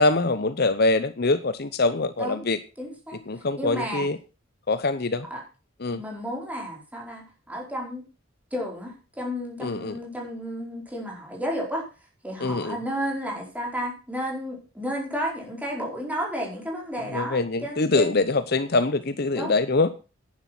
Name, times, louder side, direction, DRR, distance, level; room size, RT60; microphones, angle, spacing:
voice 1, 0.0-2.6 3.3-4.2 4.7-5.3 5.8-6.0 9.6-9.9 12.4-12.8 17.1-19.9, left 3 dB, 50° left, 13 dB, 0.8 m, -24 dB
voice 2, 2.8-4.1 5.3-5.4 5.9-8.0 8.5-11.9 12.2-18.1 19.3-19.5, equal, 5° right, -1 dB, 4.7 m, -32 dB
10.5 x 10.5 x 6.1 m, 0.33 s
head